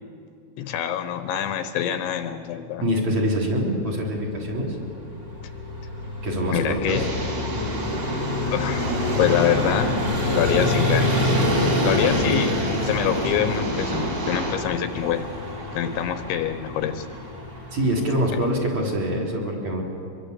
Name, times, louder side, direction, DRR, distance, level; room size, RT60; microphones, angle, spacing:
voice 1, 0.6-2.8 6.5-7.1 8.5-9.9 10.3-11.4 11.8-12.5 12.8-15.3 15.7-17.1 18.3-18.4, left 10 dB, 75° left, 9 dB, 3.1 m, -25 dB
voice 2, 2.8-4.8 6.2-7.1 11.9-12.4 17.7-19.8, equal, 40° right, -3 dB, 4.4 m, -25 dB
Vehicle, 4.4-19.1, left 1 dB, 15° right, 1.9 m, -27 dB
sound 1, 6.9-14.6, right 2 dB, 80° right, 7.4 m, -30 dB
25.5 x 23.0 x 8.2 m, 2.4 s
omnidirectional pair, 5.6 m